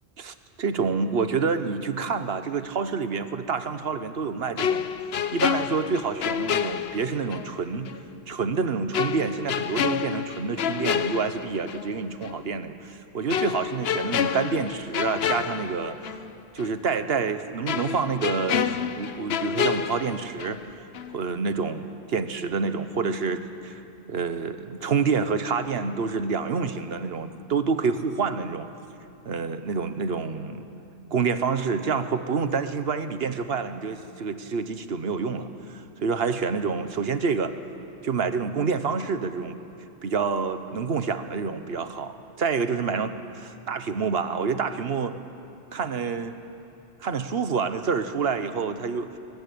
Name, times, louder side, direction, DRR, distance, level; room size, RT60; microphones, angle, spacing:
voice 1, 0.2-4.9 5.3-7.9 8.3-16.0 16.5-20.9 21.1-23.8 24.1-28.7 29.2-30.6 31.1-37.5 38.0-39.6 40.0-45.1 45.7-46.4 47.0-49.1, right 5 dB, 55° right, 10 dB, 1.3 m, -28 dB
sound 1, 4.6-7.5 7.8-8.0 8.9-11.9 12.2-12.4 13.3-16.3 16.6-16.7 17.7-20.7 20.9-21.2, left 8 dB, 60° left, 0.9 m, -28 dB
22.0 x 20.5 x 8.6 m, 2.7 s
omnidirectional pair, 1.2 m